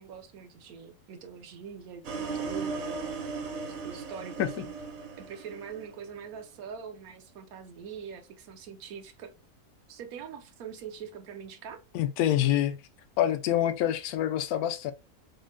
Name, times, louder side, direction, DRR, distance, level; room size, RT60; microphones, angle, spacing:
voice 1, 0.0-3.1 3.8-4.7 5.2-9.3 9.9-11.8, right 7 dB, 75° right, 1.1 m, -43 dB
sound 1, 2.0-6.2, right 4 dB, 55° right, 1.0 m, -36 dB
voice 2, 11.9-12.8 13.2-14.9, left 11 dB, 80° left, 1.1 m, -26 dB
6.3 x 2.1 x 2.4 m
omnidirectional pair, 1.6 m